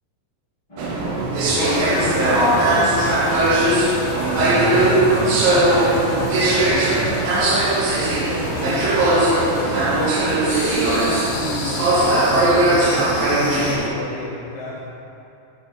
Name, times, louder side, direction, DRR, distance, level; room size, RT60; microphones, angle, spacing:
sound 1, 0.7-6.6, right 1 dB, 40° left, 0.4 m, -34 dB
sound 2, 0.8-13.9, right 2 dB, 85° right, 2.2 m, -19 dB
sound 3, 1.4-13.8, left 2 dB, 80° left, 2.1 m, -32 dB
voice 1, 1.5-2.9 8.3-14.8, left 2 dB, 65° left, -7 dB, 1.6 m, -29 dB
voice 2, 4.0-7.4, right 2 dB, 65° right, -8 dB, 2.7 m, -28 dB
6.8 x 4.5 x 4.6 m, 2.8 s
omnidirectional pair, 3.4 m